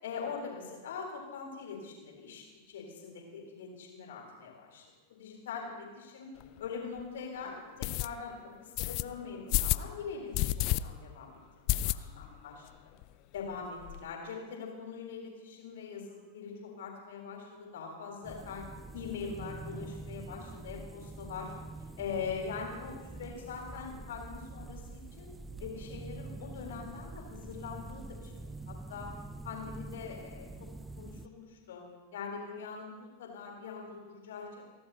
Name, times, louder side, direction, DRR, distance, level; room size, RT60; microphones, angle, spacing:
voice 1, 0.0-6.3 6.6-12.7 13.3-18.6 18.9-21.5 22.0-25.3 25.6-29.1 29.4-30.5 31.0-31.8 32.1-34.7, left 5 dB, 60° left, -1 dB, 4.0 m, -42 dB
sound 1, 6.4-6.5 7.0-7.1 7.8-8.1 8.8-9.0 9.5-9.9 10.3-10.8 11.1-11.2 11.7-12.3 12.7-12.8 13.0-13.1 13.4-14.0, left 17 dB, 40° left, 0.4 m, -30 dB
sound 2, 18.2-31.3, right 2 dB, 10° right, 0.6 m, -45 dB
28.5 x 12.0 x 3.0 m, 1.3 s
figure-of-eight pair, 90°, 0 cm